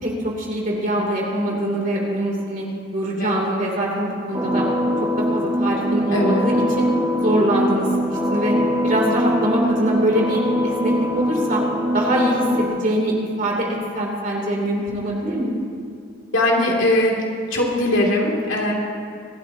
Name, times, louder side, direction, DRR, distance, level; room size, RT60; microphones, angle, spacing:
voice 1, 0.0-2.6 2.9-4.6 5.3-6.9 7.2-7.9 8.3-8.5 8.8-11.6 11.9-13.7 13.9-15.6, right 1 dB, 40° right, -2 dB, 3.0 m, -23 dB
sound 1, 4.3-12.7, equal, 20° right, 1.5 m, -23 dB
voice 2, 6.1-6.5 16.3-17.2 17.5-18.7, left 1 dB, 70° left, -2 dB, 2.7 m, -20 dB
24.0 x 12.5 x 2.9 m, 2.3 s
head